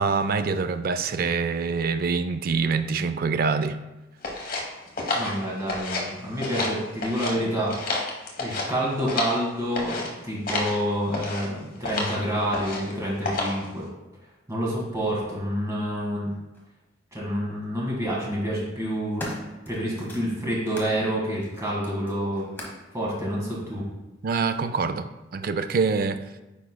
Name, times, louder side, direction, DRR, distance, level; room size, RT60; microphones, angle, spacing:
voice 1, 0.0-3.8 24.2-25.1 25.3-26.2, right 4 dB, 50° right, 10 dB, 0.4 m, -25 dB
sound 1, 4.2-6.1 6.4-7.3 7.7-9.4 9.7-10.1 10.5-10.8 11.1-11.5 11.8-12.2 12.5-12.9 13.2-13.7, left 2 dB, 50° left, 1.1 m, -30 dB
voice 2, 5.1-8.0 8.4-13.8 14.5-16.3 17.1-19.3 19.7-22.5 22.9-23.8, equal, 15° right, -5 dB, 1.7 m, -28 dB
sound 2, 16.5-16.7 17.8-18.1 18.7-21.0 21.4-22.9 23.8-23.9, equal, 10° left, 1.0 m, -41 dB
9.2 x 4.8 x 2.2 m, 1.1 s
head